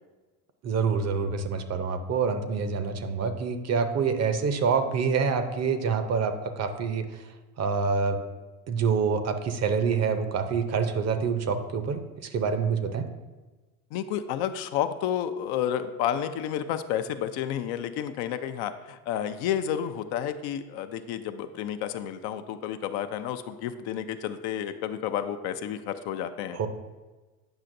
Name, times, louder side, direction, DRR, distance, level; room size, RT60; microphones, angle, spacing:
voice 1, 0.6-7.3 7.6-8.2 8.7-13.1 26.5-26.7, right 5 dB, 35° right, 9 dB, 0.6 m, -26 dB
voice 2, 13.9-26.6, left 10 dB, 60° left, 9 dB, 0.6 m, -31 dB
8.9 x 5.7 x 2.6 m, 1.2 s
hypercardioid pair, 85°, 44 cm